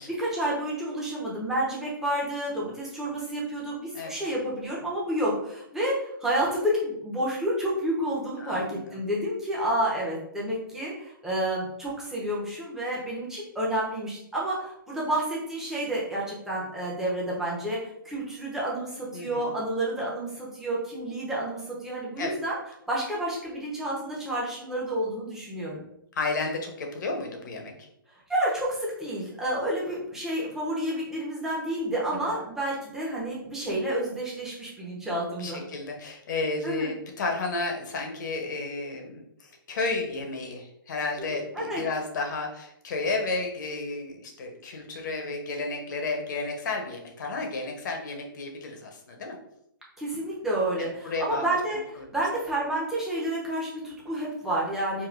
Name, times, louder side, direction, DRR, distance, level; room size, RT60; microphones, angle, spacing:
voice 1, 0.0-22.6 22.9-25.8 28.3-35.6 36.6-36.9 41.2-41.4 41.7-41.8 50.0-51.8 52.1-55.1, right 1 dB, 5° right, -6 dB, 0.9 m, -30 dB
voice 2, 8.4-9.0 19.1-19.6 22.2-22.4 26.1-27.7 32.2-32.4 35.4-49.4 50.8-51.6 52.0-52.1 55.0-55.1, left 3 dB, 55° left, 3 dB, 0.9 m, -32 dB
4.8 x 2.6 x 2.5 m, 0.76 s
hypercardioid pair, 145°, 12 cm